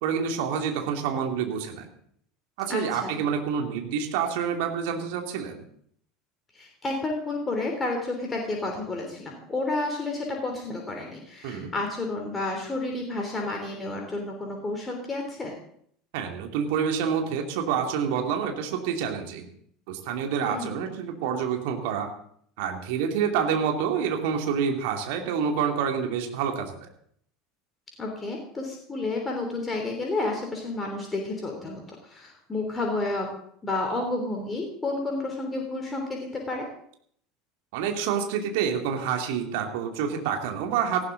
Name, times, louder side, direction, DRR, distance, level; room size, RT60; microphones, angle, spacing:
voice 1, 0.0-1.9 2.6-5.6 11.4-11.7 16.1-19.5 19.9-22.1 22.6-26.8 37.7-41.0, right 7 dB, 60° right, 3 dB, 2.5 m, -27 dB
voice 2, 2.7-3.2 6.5-15.5 20.4-20.8 28.0-33.3 33.6-36.7, left 2 dB, 20° left, 1 dB, 3.3 m, -31 dB
18.0 x 15.0 x 3.9 m, 0.65 s
figure-of-eight pair, 75°, 0 cm